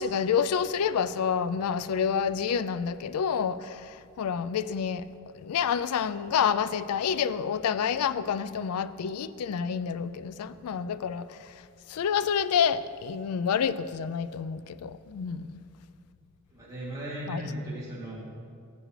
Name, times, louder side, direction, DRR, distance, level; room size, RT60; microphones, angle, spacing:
voice 1, 0.0-5.1 5.3-11.5 11.9-15.6 17.3-17.4, left 7 dB, 85° left, 0.4 m, -28 dB
voice 2, 16.5-18.2, right 1 dB, 15° right, 2.6 m, -36 dB
14.0 x 7.6 x 3.2 m
head